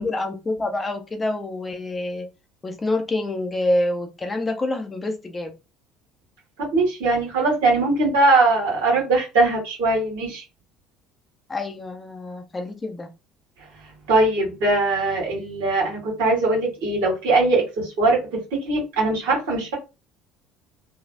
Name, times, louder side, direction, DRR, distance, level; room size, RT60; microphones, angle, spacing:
voice 1, 0.0-2.3 2.6-5.5 11.5-13.1, left 2 dB, 20° left, 0.7 m, -27 dB
voice 2, 6.6-10.4 14.1-19.8, right 2 dB, 65° right, 1.7 m, -21 dB
3.2 x 2.3 x 2.5 m
figure-of-eight pair, 60°, 0 cm